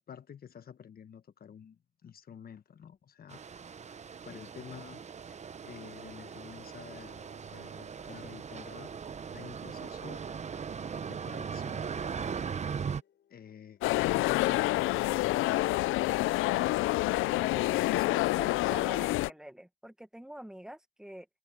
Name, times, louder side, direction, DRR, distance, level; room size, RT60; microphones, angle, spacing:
voice 1, 0.0-3.4 3.7-3.8 4.2-5.0 5.3-7.1 7.5-8.9 9.3-10.2 11.0-11.8 13.3-16.7 17.5-18.3, left 8 dB, 50° left, 1.2 m, -50 dB
sound 1, 3.3-13.0, right 6 dB, 35° right, 0.8 m, -39 dB
sound 2, 5.7-19.4, left 10 dB, 65° left, 7.9 m, -67 dB
sound 3, 13.8-19.3, left 18 dB, 85° left, 0.4 m, -28 dB
voice 2, 17.3-17.8 18.1-21.3, right 1 dB, 5° right, 1.5 m, -46 dB
cardioid pair, 90°, 20 cm